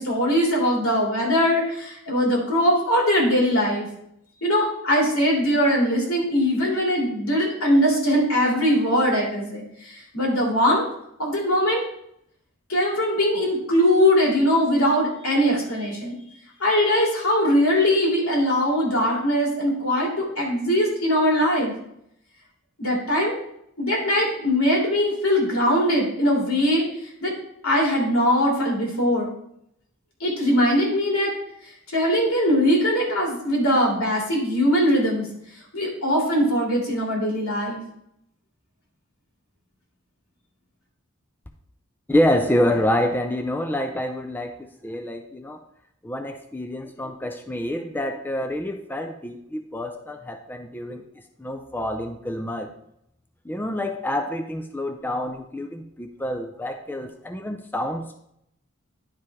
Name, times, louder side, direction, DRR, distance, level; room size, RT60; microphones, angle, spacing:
voice 1, 0.0-3.9 4.4-10.8 11.2-11.8 12.7-16.1 16.6-21.7 22.8-23.4 23.8-26.9 27.2-27.3 27.6-29.3 30.2-31.3 31.9-35.3 35.7-37.8, equal, 85° left, -2 dB, 3.0 m, -21 dB
voice 2, 42.1-45.6 46.0-51.0 51.4-52.7 53.4-58.2, left 1 dB, 10° left, 5 dB, 0.4 m, -27 dB
10.5 x 4.9 x 3.5 m, 0.74 s
head